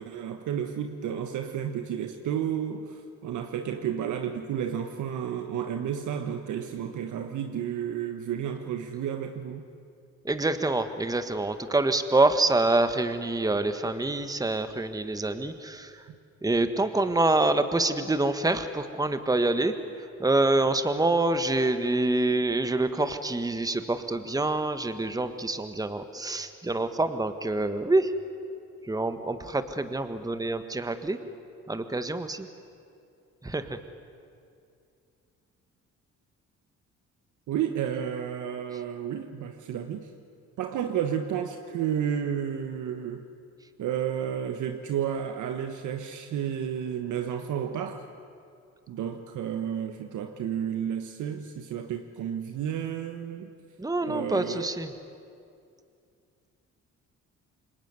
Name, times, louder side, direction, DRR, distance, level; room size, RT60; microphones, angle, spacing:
voice 1, 0.0-9.7 37.5-40.1 40.6-43.2 43.8-48.0 48.9-53.5 54.0-54.7, right 9 dB, 80° right, 6 dB, 1.4 m, -31 dB
voice 2, 10.2-16.0 16.4-28.1 28.8-31.2 31.7-32.5 33.4-33.8 53.8-54.9, right 2 dB, 10° right, 9 dB, 1.5 m, -26 dB
27.0 x 22.0 x 9.6 m, 2.4 s
cardioid pair, 90°, 30 cm